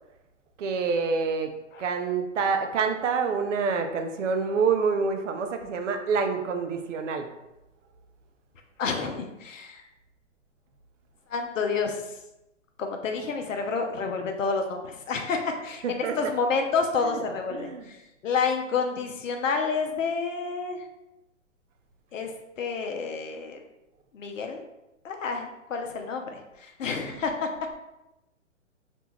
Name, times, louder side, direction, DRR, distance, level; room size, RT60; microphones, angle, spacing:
voice 1, 0.6-7.3 15.8-16.3 17.0-17.2 17.5-17.9 27.1-27.2, right 5 dB, 70° right, 6 dB, 0.5 m, -27 dB
voice 2, 8.8-9.8 11.3-12.0 12.8-17.7 18.2-20.8 22.1-22.3 22.6-23.6 24.1-24.6 25.0-27.5, left 5 dB, 80° left, 4 dB, 0.6 m, -29 dB
2.6 x 2.2 x 3.0 m, 0.93 s
hypercardioid pair, 125°, 38 cm